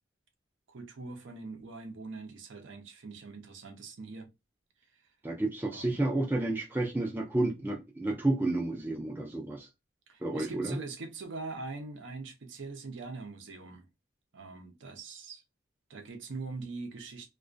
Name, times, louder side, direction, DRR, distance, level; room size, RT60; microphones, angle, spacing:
voice 1, 0.7-4.3 5.7-6.1 10.1-13.9 14.3-15.4 15.9-17.3, right 3 dB, 70° right, 0.5 m, -42 dB
voice 2, 5.2-9.7 10.2-10.8, right 2 dB, 10° right, 0.3 m, -31 dB
2.2 x 2.2 x 2.4 m
head